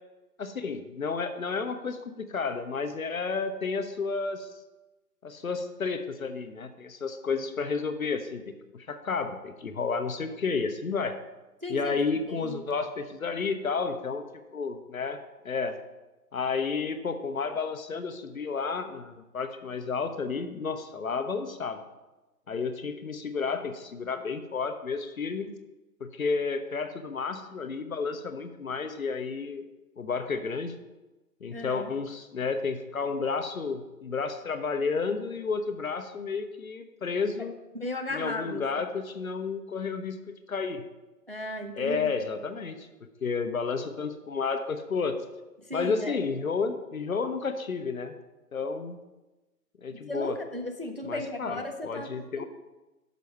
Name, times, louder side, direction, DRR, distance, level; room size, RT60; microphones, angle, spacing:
voice 1, 0.4-4.5 5.2-8.4 8.7-11.2 11.7-14.2 14.5-15.8 16.3-21.8 22.5-25.5 26.0-29.6 30.0-30.7 31.4-37.5 38.1-40.2 40.5-40.8 41.8-42.9 43.2-45.2 45.7-48.2 48.5-49.0 49.8-50.4 51.0-52.5, left 5 dB, 60° left, 8 dB, 0.8 m, -31 dB
voice 2, 11.6-12.0 12.3-12.6 31.5-31.9 37.7-38.6 41.3-42.2 45.6-46.3 49.9-52.1 52.4-52.5, left 1 dB, 40° right, 4 dB, 0.4 m, -36 dB
6.2 x 5.4 x 5.7 m, 1.1 s
figure-of-eight pair, 150°, 48 cm